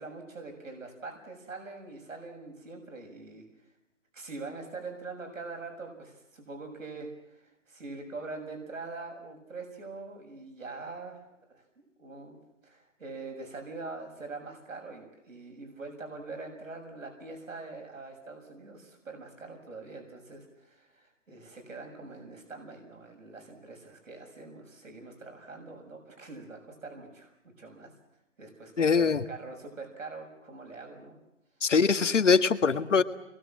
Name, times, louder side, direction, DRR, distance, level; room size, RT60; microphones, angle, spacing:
voice 1, 0.0-3.7 4.1-11.2 11.5-27.9 28.4-31.2, right 3 dB, 80° right, 3 dB, 6.9 m, -43 dB
voice 2, 28.8-29.2 31.6-33.0, left 5 dB, 70° left, 10 dB, 1.7 m, -23 dB
29.5 x 22.0 x 7.5 m, 0.91 s
hypercardioid pair, 180°, 38 cm